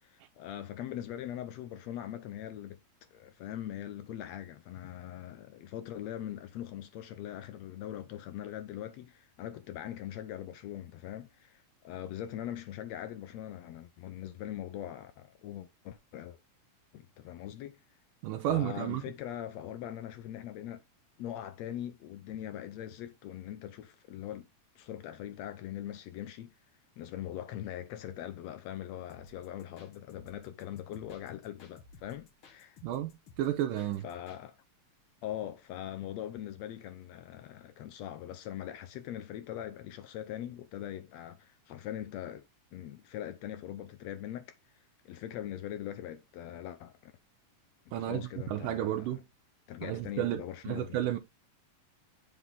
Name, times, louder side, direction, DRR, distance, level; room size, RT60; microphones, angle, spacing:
voice 1, 0.0-2.8 3.1-16.4 16.9-17.8 18.5-20.8 21.2-24.5 24.8-26.5 27.0-32.8 34.0-34.6 35.2-42.4 42.7-44.5 45.0-47.1 48.0-49.1 49.7-51.2, left 11 dB, 80° left, 1.5 m, -41 dB
voice 2, 18.2-19.0 32.8-33.1 33.4-34.1 47.9-49.2 49.8-51.2, right 12 dB, 80° right, 2.3 m, -32 dB
sound 1, 29.1-34.4, left 3 dB, 50° left, 1.7 m, -57 dB
7.6 x 4.0 x 3.6 m
omnidirectional pair, 3.9 m